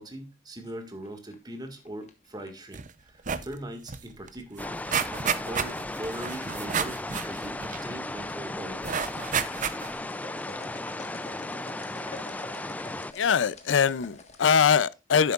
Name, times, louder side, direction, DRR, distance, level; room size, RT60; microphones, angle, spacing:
voice 1, 0.0-4.8 5.1-9.0, right 1 dB, 20° right, 1.8 m, -40 dB
sound 1, 0.6-2.8 4.3-4.6 5.0-5.5 6.4-7.0 7.3-7.5 7.9-8.0 8.7-14.7, left 3 dB, 40° left, 1.4 m, -47 dB
sound 2, 2.7-2.9 3.2-3.5 3.9-4.0 4.3-8.2 8.8-10.1 10.6-10.7, right 7 dB, 45° right, 0.7 m, -31 dB
sound 3, 4.6-13.1, left 2 dB, 10° left, 0.3 m, -36 dB
voice 2, 13.2-15.3, left 7 dB, 85° left, 0.5 m, -22 dB
10.5 x 8.2 x 2.4 m
head